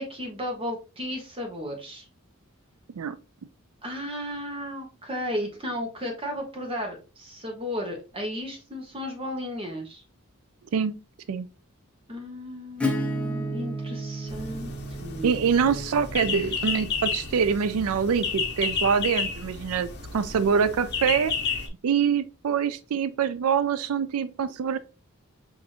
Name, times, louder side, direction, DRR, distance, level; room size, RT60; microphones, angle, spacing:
voice 1, 0.0-2.1 3.8-10.0 12.1-14.7 15.0-16.0, equal, 25° right, 0.9 m, -34 dB
Acoustic guitar / Strum, 12.8-18.3, equal, 5° left, 0.7 m, -33 dB
sound 1, 14.3-21.7, left 5 dB, 50° left, 0.8 m, -32 dB
voice 2, 15.2-21.3 21.8-24.8, right 6 dB, 80° right, 0.4 m, -25 dB
6.0 x 2.6 x 3.0 m
head